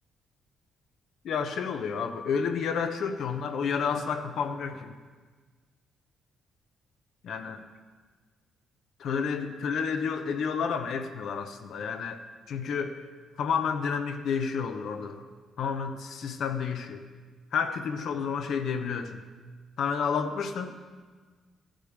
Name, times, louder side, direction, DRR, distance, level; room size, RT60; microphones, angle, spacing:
voice 1, 1.2-4.9 7.2-7.6 9.0-13.0 13.4-15.2 15.6-17.0 17.5-19.2 19.8-20.7, left 6 dB, 70° left, 7 dB, 0.8 m, -30 dB
13.5 x 5.2 x 6.4 m, 1.4 s
cardioid pair, 90°, 0 cm